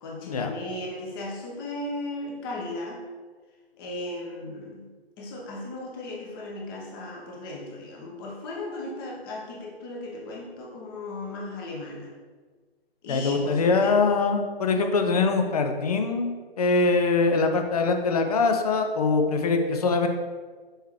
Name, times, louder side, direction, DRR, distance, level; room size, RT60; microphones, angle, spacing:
voice 1, 0.0-3.0 3.8-4.9 5.2-12.1 13.0-14.0, left 2 dB, 25° left, -1 dB, 1.0 m, -36 dB
voice 2, 13.1-20.1, left 4 dB, 40° left, 5 dB, 0.7 m, -23 dB
6.5 x 4.6 x 3.2 m, 1.5 s
figure-of-eight pair, 135°, 31 cm